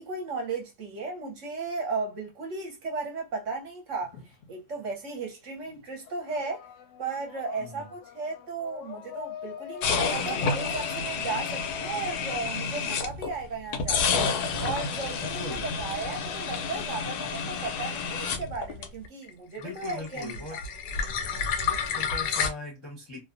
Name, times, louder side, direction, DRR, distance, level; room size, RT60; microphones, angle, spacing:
voice 1, 0.0-4.2 4.5-6.7 7.0-14.3 14.6-20.6, right 4 dB, 60° right, 1.0 m, -35 dB
sound 1, 4.0-5.3 5.6-13.4, left 9 dB, 65° left, 0.9 m, -44 dB
voice 2, 7.6-7.9 15.2-15.8 19.6-20.6 21.6-23.3, left 2 dB, 25° left, 0.6 m, -40 dB
sound 2, 9.8-13.3 13.7-19.3 19.6-22.5, left 5 dB, 90° left, 1.2 m, -30 dB
2.7 x 2.2 x 2.4 m
omnidirectional pair, 1.6 m